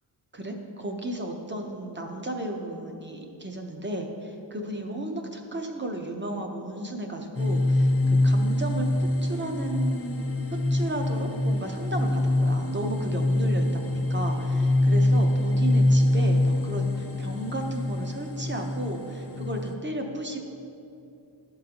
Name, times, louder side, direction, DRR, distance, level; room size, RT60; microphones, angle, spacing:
voice 1, 0.3-10.3 10.7-20.4, right 1 dB, 25° right, 3 dB, 0.7 m, -34 dB
sound 1, 7.3-19.7, left 1 dB, 30° left, 0.5 m, -24 dB
11.5 x 3.9 x 2.9 m, 2.7 s
wide cardioid pair, 55°, 46 cm